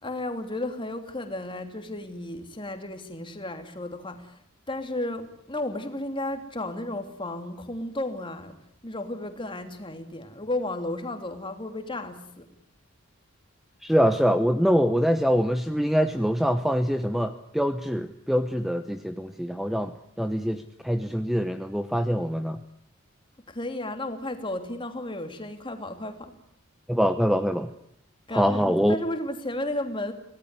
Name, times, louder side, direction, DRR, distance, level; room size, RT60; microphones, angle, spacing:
voice 1, 0.0-4.4 4.7-8.6 8.8-12.5 23.5-26.3 28.3-30.1, left 1 dB, 25° left, 6 dB, 2.9 m, -33 dB
voice 2, 13.8-19.9 20.2-22.6 26.9-27.7 28.3-29.0, equal, ahead, 9 dB, 1.0 m, -24 dB
25.5 x 18.5 x 9.7 m, 0.71 s
head